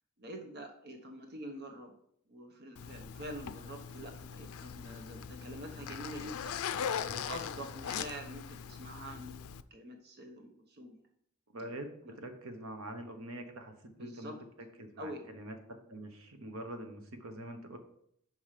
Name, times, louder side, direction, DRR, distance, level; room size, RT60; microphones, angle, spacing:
voice 1, 0.2-1.9 2.3-6.5 7.0-11.0 12.0-12.1 14.0-14.3 15.0-15.3, right 1 dB, 50° right, 4 dB, 0.9 m, -46 dB
Zipper (clothing), 2.8-9.6, left 7 dB, 85° left, 0.4 m, -40 dB
voice 2, 11.5-13.7 14.0-14.3 14.8-17.8, right 1 dB, 75° right, 6 dB, 1.0 m, -44 dB
6.0 x 5.8 x 4.9 m, 0.69 s
head